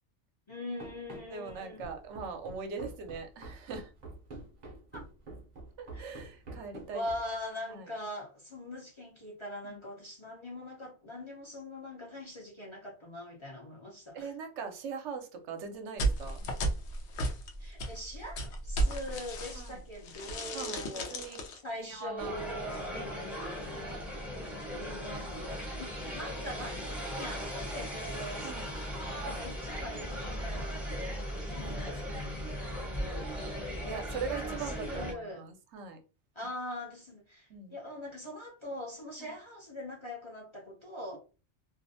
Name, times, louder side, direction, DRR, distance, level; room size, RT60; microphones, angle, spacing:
voice 1, 0.5-1.9 4.7-5.0 5.9-6.0 6.9-14.3 17.6-21.2 21.6-23.1 24.7-26.8 27.1-28.6 29.0-33.9 34.4-35.4 36.4-41.2, left 1 dB, 30° left, 0.6 m, -42 dB
Run, 0.8-7.4, right 2 dB, 45° right, 0.6 m, -47 dB
voice 2, 1.3-3.9 5.8-7.0 7.7-7.9 9.6-9.8 14.1-16.4 19.6-19.8 20.5-21.4 21.8-22.4 22.9-23.3 28.4-28.7 31.6-32.5 33.9-36.0 37.5-37.7 39.2-39.3, right 5 dB, 80° right, 0.9 m, -41 dB
sound 1, 16.0-19.8 20.0-21.6, right 1 dB, 75° left, 0.9 m, -33 dB
sound 2, 22.2-35.1, equal, ahead, 0.6 m, -38 dB
2.5 x 2.0 x 2.5 m
omnidirectional pair, 1.2 m